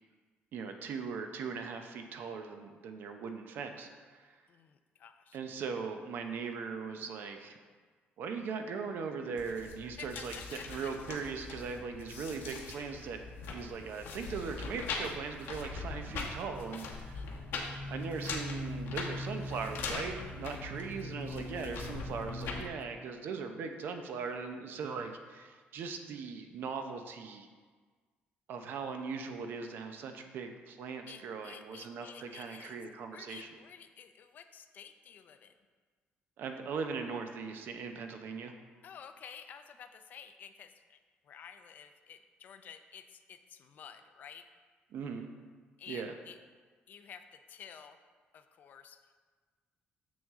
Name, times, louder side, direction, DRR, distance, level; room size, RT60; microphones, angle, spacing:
voice 1, 0.5-4.4 5.3-7.6 8.2-13.2 13.5-17.4 17.9-27.5 28.5-33.5 36.4-38.5 44.9-45.3 45.9-46.1, right 5 dB, 60° right, 6 dB, 0.7 m, -39 dB
voice 2, 4.5-5.4 10.0-10.9 17.1-17.3 22.6-22.8 31.1-32.8 33.1-35.6 38.8-44.5 45.8-46.4 46.9-48.0 48.3-49.2, left 7 dB, 50° left, 8 dB, 0.5 m, -52 dB
sound 1, 9.4-22.6, left 3 dB, 75° left, 1.0 m, -41 dB
7.1 x 6.2 x 3.6 m, 1.5 s
cardioid pair, 155°, 4 cm